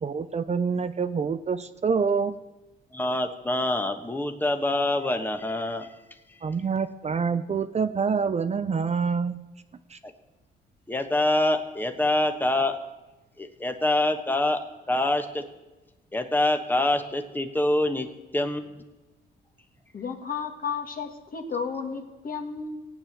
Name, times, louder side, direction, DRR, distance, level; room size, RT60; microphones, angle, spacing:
voice 1, 0.0-2.3 6.4-9.4 9.9-10.0, right 5 dB, 35° right, 11 dB, 0.6 m, -26 dB
voice 2, 2.9-5.9 10.9-12.8 13.4-14.6 14.9-15.4 16.1-18.1 18.3-18.8, left 1 dB, 10° left, 6 dB, 1.2 m, -25 dB
voice 3, 19.9-22.8, left 5 dB, 45° left, 5 dB, 2.0 m, -33 dB
15.0 x 9.0 x 7.3 m, 1.1 s
cardioid pair, 90°, 20 cm